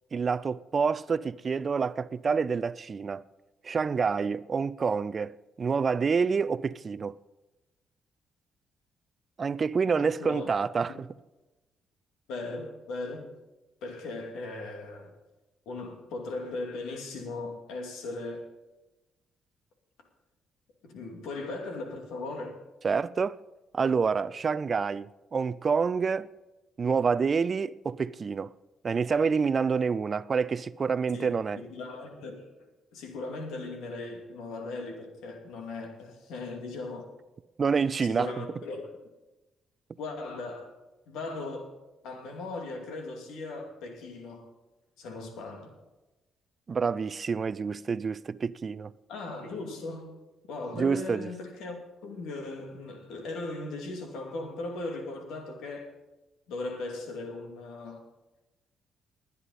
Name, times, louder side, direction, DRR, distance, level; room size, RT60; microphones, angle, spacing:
voice 1, 0.1-3.2 3.6-7.2 9.4-10.9 22.8-23.4 23.7-26.3 26.8-28.5 28.8-31.6 37.6-38.3 46.7-48.9 50.7-51.3, right 5 dB, 40° right, 0.4 m, -27 dB
voice 2, 10.0-10.5 10.9-11.0 12.3-13.3 13.8-15.1 15.7-18.4 20.8-22.6 31.1-32.5 32.9-37.1 38.0-38.9 40.0-40.8 41.1-41.8 42.0-44.5 45.0-45.8 49.1-50.2 50.5-55.9 56.5-58.0, left 2 dB, 85° left, 2.4 m, -38 dB
19.5 x 9.7 x 4.2 m
cardioid pair, 90°, 0 cm